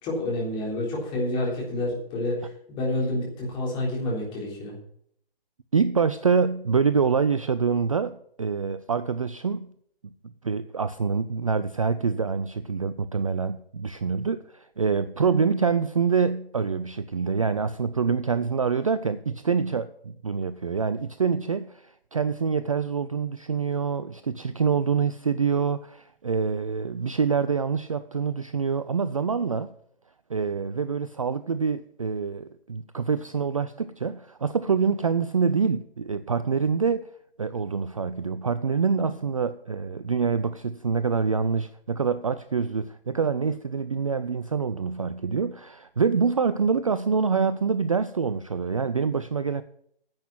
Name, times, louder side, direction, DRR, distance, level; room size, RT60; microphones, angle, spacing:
voice 1, 0.0-4.8, left 1 dB, 15° left, -4 dB, 3.7 m, -29 dB
voice 2, 5.7-9.7 10.4-29.7 30.3-37.1 37.4-49.6, right 5 dB, 35° right, 13 dB, 0.4 m, -26 dB
10.5 x 7.9 x 5.9 m, 0.67 s
figure-of-eight pair, 135°, 30 cm